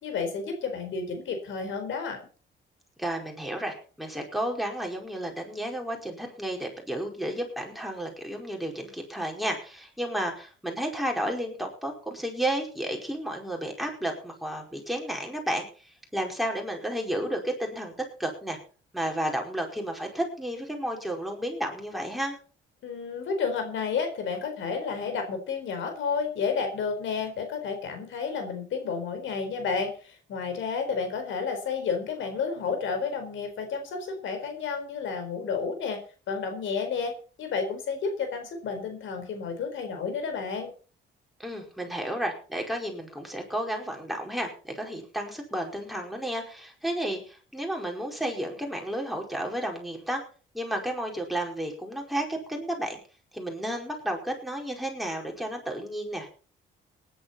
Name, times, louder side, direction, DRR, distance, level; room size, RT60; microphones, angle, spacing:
voice 1, 0.0-2.2 22.8-36.0 36.3-37.1 37.4-40.7, left 5 dB, 75° left, 6 dB, 4.3 m, -31 dB
voice 2, 3.0-15.7 16.1-18.6 18.9-22.4 41.4-50.2 50.5-53.0 53.3-56.3, right 1 dB, ahead, 1 dB, 4.9 m, -32 dB
18.5 x 10.5 x 4.3 m, 0.39 s
cardioid pair, 90°, 20 cm